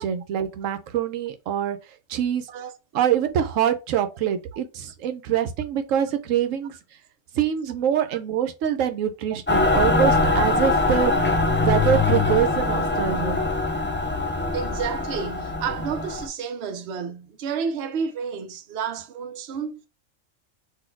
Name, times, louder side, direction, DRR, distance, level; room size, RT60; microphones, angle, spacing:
voice 1, 0.0-1.8 2.1-2.5 2.9-6.7 7.3-11.2 11.6-13.4, right 9 dB, 85° right, 1.0 m, -24 dB
Mechanical fan, 9.5-16.3, left 3 dB, 20° left, 0.3 m, -22 dB
voice 2, 14.5-19.9, right 6 dB, 60° right, 0.9 m, -31 dB
4.1 x 2.6 x 4.4 m
omnidirectional pair, 1.3 m